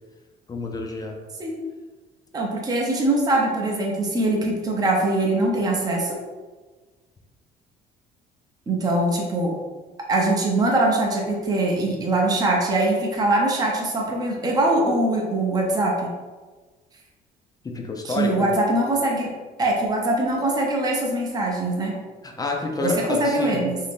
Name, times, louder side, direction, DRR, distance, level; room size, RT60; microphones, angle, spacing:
voice 1, 0.5-1.2 17.6-18.5 22.2-23.6, left 3 dB, 20° left, 1 dB, 0.5 m, -29 dB
voice 2, 2.3-6.2 8.7-9.6 10.1-16.1 18.0-19.3 19.6-21.9 22.8-23.8, right 2 dB, 20° right, -1 dB, 0.6 m, -22 dB
2.9 x 2.7 x 3.5 m, 1.3 s
cardioid pair, 110°, 17 cm